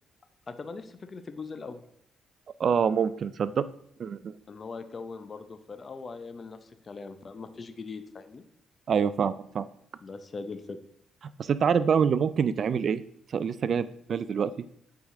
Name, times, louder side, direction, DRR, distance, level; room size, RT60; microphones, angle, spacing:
voice 1, 0.5-1.8 4.5-8.5 10.0-10.8, left 4 dB, 35° left, 10 dB, 0.6 m, -40 dB
voice 2, 2.6-3.6 4.0-4.3 8.9-9.7 11.4-13.0 13.3-14.5, right 7 dB, 55° right, 15 dB, 0.4 m, -26 dB
8.3 x 4.8 x 3.7 m, 0.67 s
cardioid pair, 90°, 0 cm